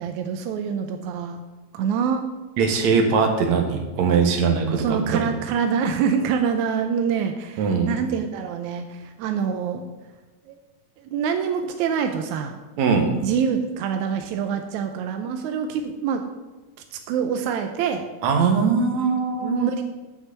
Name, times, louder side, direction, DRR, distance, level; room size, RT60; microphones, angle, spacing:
voice 1, 0.0-1.4 1.7-2.3 4.8-9.8 10.5-10.6 11.0-12.6 13.1-16.2 16.9-18.0 19.4-19.8, right 7 dB, 80° right, 6 dB, 1.7 m, -25 dB
voice 2, 2.6-5.2 7.6-7.9 12.8-13.1 18.2-19.7, right 5 dB, 60° right, 3 dB, 2.3 m, -21 dB
8.1 x 5.9 x 8.1 m, 1.2 s
omnidirectional pair, 4.2 m